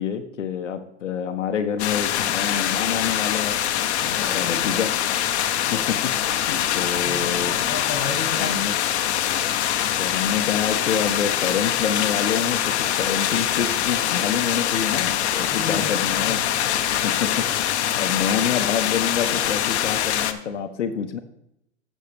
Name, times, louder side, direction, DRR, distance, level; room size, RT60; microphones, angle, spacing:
voice 1, 0.0-3.6 4.0-4.9 5.7-6.1 6.4-7.6 8.4-8.8 10.0-16.4 17.0-17.4 18.0-21.2, left 7 dB, 90° left, 5 dB, 0.9 m, -27 dB
sound 1, 1.8-20.3, left 10 dB, 65° left, 0.9 m, -24 dB
voice 2, 4.0-4.9 7.0-8.8 15.5-16.9, left 5 dB, 30° left, 5 dB, 2.2 m, -34 dB
12.5 x 6.4 x 3.3 m, 0.79 s
hypercardioid pair, 130°, 36 cm